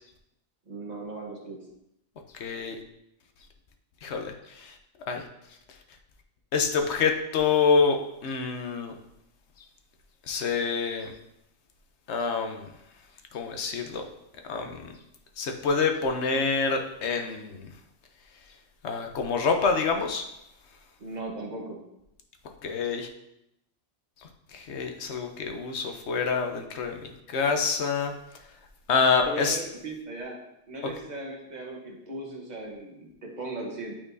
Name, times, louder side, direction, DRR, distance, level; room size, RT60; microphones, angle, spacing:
voice 1, 0.7-1.6 21.0-21.8 29.3-30.4 30.7-34.0, right 2 dB, 40° right, -1 dB, 1.3 m, -37 dB
voice 2, 2.3-2.8 4.0-4.7 5.1-5.2 6.5-8.9 10.3-11.1 12.1-12.7 13.3-14.1 14.5-14.9 15.4-17.7 18.8-20.2 22.6-23.1 24.5-28.1 28.9-29.6, left 5 dB, 75° left, 4 dB, 1.0 m, -27 dB
8.8 x 4.3 x 2.7 m, 0.82 s
omnidirectional pair, 1.2 m